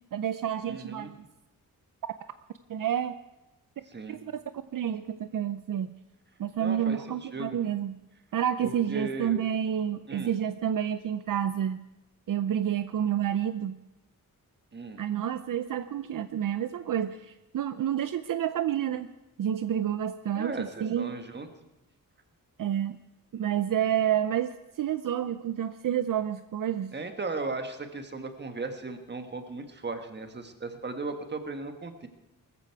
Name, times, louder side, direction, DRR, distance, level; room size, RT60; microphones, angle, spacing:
voice 1, 0.1-1.2 2.7-3.1 4.1-4.4 4.7-5.9 6.4-8.0 8.3-11.8 12.3-13.8 15.0-19.1 19.4-21.1 22.6-23.0 23.3-26.9, right 9 dB, 65° right, 12 dB, 0.6 m, -29 dB
voice 2, 0.7-1.1 3.9-4.2 6.6-7.6 8.6-9.4 10.1-10.3 14.7-15.0 20.3-21.5 26.9-32.1, right 3 dB, 30° right, 7 dB, 1.5 m, -37 dB
20.0 x 14.5 x 4.7 m, 1.0 s
wide cardioid pair, 155°, 35 cm